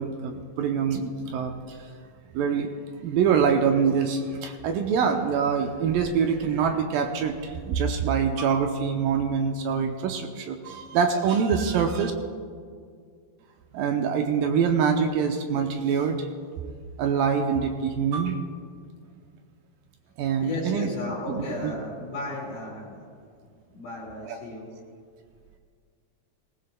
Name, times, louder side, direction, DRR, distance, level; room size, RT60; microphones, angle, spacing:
voice 1, 0.0-1.8 2.3-2.7 3.0-12.1 13.7-16.3 17.0-18.4 20.2-20.9 21.3-21.7 24.3-24.4, right 6 dB, 80° right, 4 dB, 2.1 m, -25 dB
voice 2, 20.4-23.0 23.7-24.7, left 2 dB, 55° left, -6 dB, 3.4 m, -34 dB
19.0 x 19.0 x 2.2 m, 2.1 s
omnidirectional pair, 4.6 m